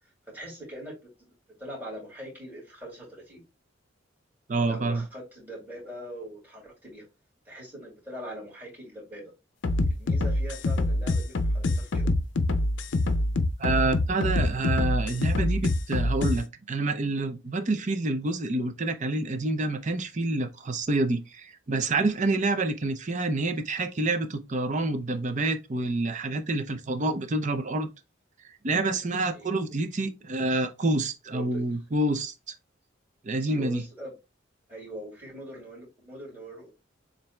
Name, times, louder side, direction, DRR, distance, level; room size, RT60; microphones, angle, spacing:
voice 1, 0.3-1.3 1.6-3.4 4.6-7.0 7.5-9.3 9.8-12.1 29.3-29.5 31.3-31.6 33.4-34.1 34.7-36.7, equal, 10° right, 2.5 m, -42 dB
voice 2, 4.5-5.0 13.6-27.9 28.6-32.5 33.2-33.8, right 2 dB, 40° right, 0.6 m, -28 dB
sound 1, 9.6-16.4, left 2 dB, 65° left, 0.5 m, -25 dB
7.1 x 2.6 x 2.2 m
head